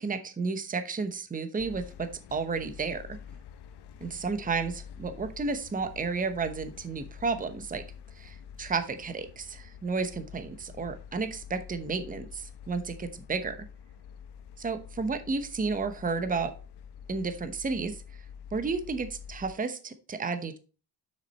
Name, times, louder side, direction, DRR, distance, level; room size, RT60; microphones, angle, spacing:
voice 1, 0.0-3.0 4.0-4.7 5.0-7.8 8.1-13.6 14.6-16.5 17.1-18.0 18.5-20.6, right 4 dB, 20° right, 9 dB, 0.9 m, -32 dB
sound 1, 1.6-19.5, left 8 dB, 70° left, 1.1 m, -47 dB
7.3 x 6.4 x 4.2 m, 0.35 s
cardioid pair, 110°, 41 cm